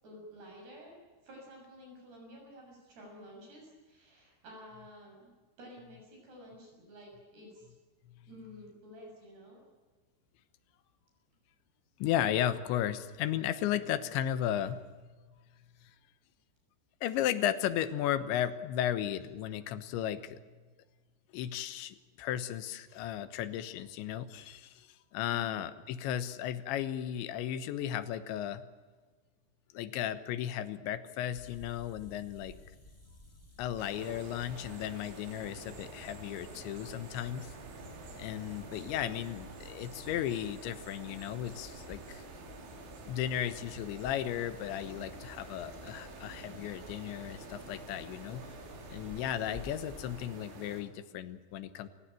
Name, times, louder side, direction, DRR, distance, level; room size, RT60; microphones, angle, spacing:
voice 1, 0.0-0.9 1.2-5.3 5.6-7.8 8.3-9.6, equal, 60° right, 1 dB, 8.6 m, -51 dB
voice 2, 12.0-14.8 17.0-20.4 21.3-24.9 25.1-28.6 29.7-32.5 33.6-37.5 38.2-42.2 43.1-48.4 48.9-51.9, left 11 dB, 80° left, 13 dB, 3.4 m, -35 dB
sound 1, 31.3-50.3, left 1 dB, 10° left, 2.9 m, -54 dB
sound 2, 33.8-50.8, right 2 dB, 85° right, 6.0 m, -49 dB
29.5 x 16.5 x 9.1 m, 1.4 s
omnidirectional pair, 5.3 m